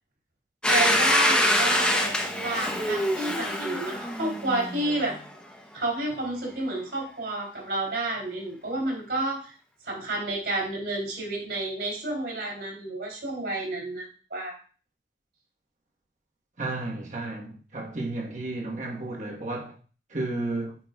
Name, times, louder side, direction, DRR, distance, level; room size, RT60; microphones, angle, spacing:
Domestic sounds home sounds, 0.6-5.3, equal, 5° left, 0.7 m, -25 dB
voice 1, 0.7-2.1 2.4-5.2 5.7-9.5 9.8-14.5, right 2 dB, 70° right, 3.2 m, -30 dB
voice 2, 16.6-19.8 20.1-20.8, right 2 dB, 45° right, 1.2 m, -32 dB
9.0 x 5.0 x 2.3 m
head